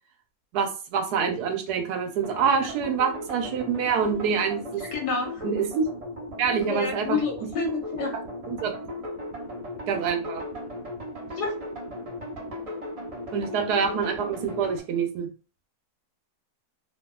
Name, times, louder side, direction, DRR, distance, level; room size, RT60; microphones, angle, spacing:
voice 1, 0.5-4.8 5.4-5.9 6.4-7.2 8.5-8.7 9.9-10.4 13.3-15.3, right 6 dB, 80° right, 5 dB, 1.2 m, -26 dB
sound 1, 2.2-14.8, left 1 dB, 50° right, 0.4 m, -37 dB
voice 2, 4.9-5.4 6.6-8.1 11.3-11.5, left 4 dB, 85° left, 1 dB, 1.5 m, -29 dB
2.9 x 2.7 x 2.2 m, 0.34 s
omnidirectional pair, 1.7 m